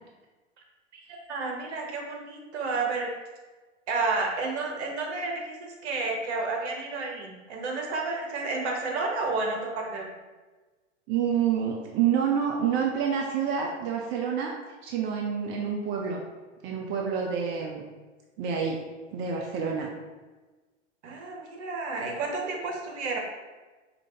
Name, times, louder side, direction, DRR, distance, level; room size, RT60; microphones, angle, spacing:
voice 1, 0.9-3.1 3.9-10.1 21.0-23.2, right 3 dB, 60° right, 1 dB, 1.1 m, -31 dB
voice 2, 11.1-14.5 14.8-16.2 16.6-17.8 18.4-18.8 19.1-19.9, right 7 dB, 30° right, 0 dB, 0.5 m, -28 dB
4.7 x 2.5 x 3.9 m, 1.3 s
hypercardioid pair, 100°, 37 cm